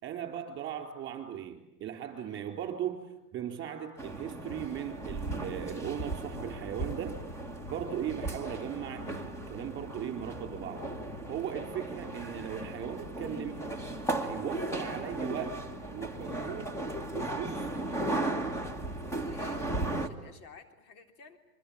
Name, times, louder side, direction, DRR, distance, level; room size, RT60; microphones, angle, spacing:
voice 1, 0.0-3.0 3.3-7.2 7.7-10.9 11.3-13.6 14.2-15.5 15.9-16.7 17.1-17.7, right 9 dB, 25° right, 5 dB, 4.2 m, -38 dB
voice 2, 2.2-2.5 11.5-12.0 19.0-21.4, left 4 dB, 65° left, 6 dB, 3.8 m, -54 dB
sound 1, 4.0-20.1, right 2 dB, 5° left, 1.4 m, -36 dB
29.0 x 23.0 x 8.8 m, 0.90 s
supercardioid pair, 145°, 48 cm